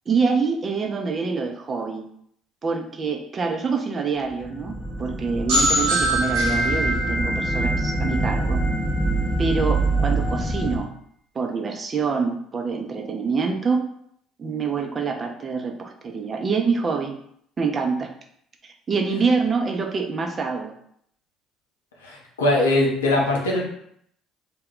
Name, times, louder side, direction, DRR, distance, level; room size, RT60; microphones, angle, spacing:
voice 1, 0.1-2.1 2.6-8.6 9.4-10.9 11.3-13.8 14.4-17.2 17.6-18.1 18.9-20.7, right 5 dB, 35° right, 3 dB, 0.5 m, -25 dB
sound 1, 4.3-10.8, right 2 dB, 5° left, 0.6 m, -25 dB
sound 2, 5.5-9.1, right 1 dB, 75° right, 1.0 m, -24 dB
voice 2, 22.0-23.6, left 1 dB, 90° left, -2 dB, 0.6 m, -21 dB
2.2 x 2.2 x 3.6 m, 0.68 s
hypercardioid pair, 60°, 0 cm